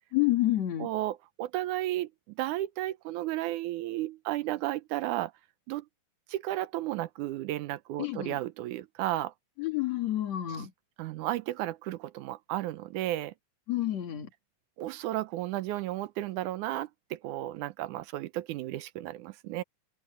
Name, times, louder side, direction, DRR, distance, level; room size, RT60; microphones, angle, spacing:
voice 1, 0.1-0.9 8.0-8.4 9.6-10.7 13.7-14.3, left 14 dB, 60° left, 3.1 m, -29 dB
voice 2, 0.8-2.1 2.4-5.3 5.7-5.9 6.3-9.3 10.5-10.6 11.0-13.3 14.8-19.6, right 15 dB, 80° right, 2.2 m, -33 dB
open air
omnidirectional pair, 3.5 m